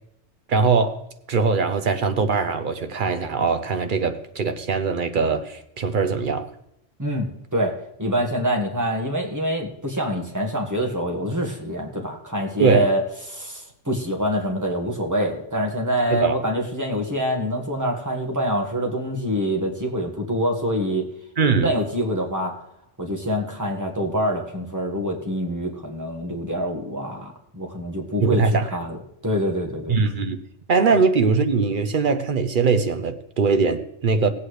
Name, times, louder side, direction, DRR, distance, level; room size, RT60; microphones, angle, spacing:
voice 1, 0.5-1.0 1.3-6.5 12.6-12.8 16.1-16.4 21.4-21.7 28.2-28.7 29.9-30.4 30.7-34.3, right 4 dB, 50° right, 9 dB, 0.8 m, -21 dB
voice 2, 7.0-13.0 13.3-21.0 21.5-22.5 23.0-29.0 29.2-30.0, equal, 15° right, 0 dB, 1.5 m, -25 dB
17.5 x 8.3 x 3.2 m, 0.78 s
omnidirectional pair, 1.2 m